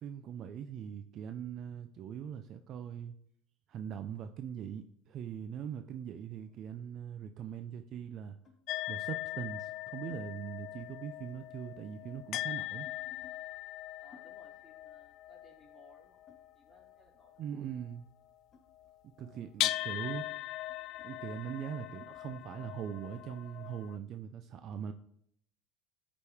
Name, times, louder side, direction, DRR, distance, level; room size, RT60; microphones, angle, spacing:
voice 1, 0.0-3.2 3.7-8.4 8.9-12.9 17.4-18.0 19.2-20.3 21.0-24.9, right 8 dB, 45° right, 9 dB, 0.5 m, -41 dB
sound 1, 6.0-7.2 8.4-8.7 9.4-10.2 10.6-10.9 11.2-13.4 14.1-17.0 17.3-22.3, left 4 dB, 25° left, 1.9 m, -64 dB
sound 2, 8.7-16.9 18.8-18.9 19.3-24.0, left 15 dB, 55° left, 0.3 m, -40 dB
voice 2, 14.0-16.2 16.5-17.7, equal, 5° right, -4 dB, 3.7 m, -62 dB
13.0 x 5.2 x 3.5 m, 0.71 s
supercardioid pair, 115°, 0 cm